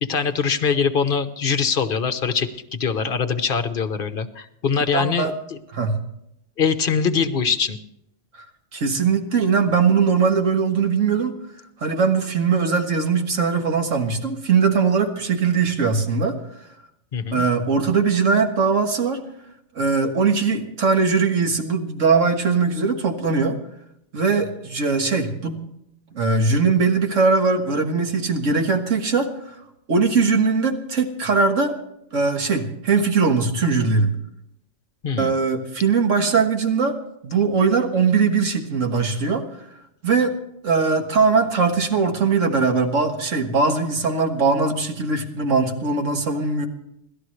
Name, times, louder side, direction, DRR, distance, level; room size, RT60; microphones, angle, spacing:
voice 1, 0.0-5.3 6.6-7.8 17.1-17.4 35.0-35.3, left 6 dB, 50° left, 10 dB, 1.1 m, -23 dB
voice 2, 4.9-5.3 5.7-6.0 8.4-8.5 8.7-11.3 11.8-16.4 17.3-19.2 19.8-23.6 24.1-25.6 26.1-29.5 29.9-31.7 32.1-34.1 35.2-37.0 37.2-39.4 40.0-40.4 40.6-46.7, right 4 dB, 80° right, 4 dB, 1.9 m, -20 dB
28.0 x 12.5 x 3.3 m, 0.78 s
omnidirectional pair, 1.3 m